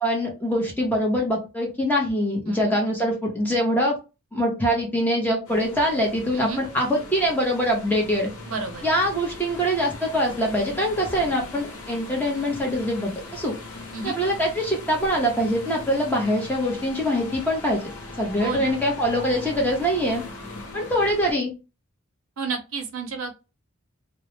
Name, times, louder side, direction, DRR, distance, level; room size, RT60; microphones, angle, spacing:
voice 1, 0.0-4.0 4.3-8.3 8.8-13.5 14.0-17.8 18.1-20.2 20.7-21.5, equal, 10° left, -1 dB, 0.6 m, -24 dB
voice 2, 2.5-2.8 6.3-6.6 8.5-8.8 13.9-14.2 18.4-18.8 22.4-23.3, right 4 dB, 75° right, 4 dB, 0.6 m, -31 dB
sound 1, 5.4-21.3, left 2 dB, 85° left, 0.8 m, -39 dB
2.2 x 2.0 x 2.9 m, 0.29 s
head